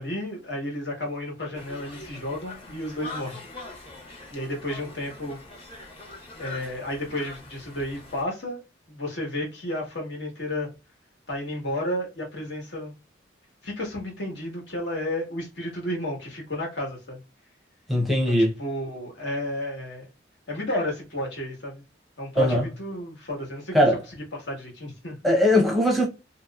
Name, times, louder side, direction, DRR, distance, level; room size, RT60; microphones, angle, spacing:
voice 1, 0.0-3.4 4.3-5.4 6.4-8.6 8.9-10.7 11.3-12.9 13.6-17.2 18.3-20.1 20.5-21.8 22.2-23.7 24.4-25.1, left 1 dB, 70° left, 1.4 m, -32 dB
Conversation, 1.5-8.2, left 2 dB, 30° left, 0.9 m, -43 dB
voice 2, 17.9-18.5 22.4-22.7 23.7-24.0 25.2-26.1, equal, ahead, 0.7 m, -20 dB
3.1 x 2.8 x 2.3 m
head